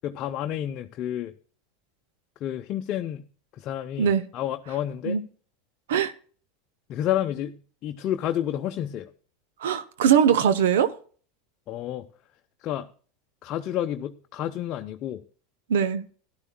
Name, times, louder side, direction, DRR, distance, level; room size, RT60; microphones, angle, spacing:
voice 1, 0.0-1.3 2.4-3.3 3.5-5.2 6.9-9.1 11.7-12.1 12.6-12.9 13.4-15.2, left 11 dB, 45° left, 0.6 m, -30 dB
voice 2, 9.6-10.9 15.7-16.0, right 8 dB, 85° right, 0.6 m, -21 dB
13.5 x 11.5 x 2.2 m
hypercardioid pair, 110°, 0 cm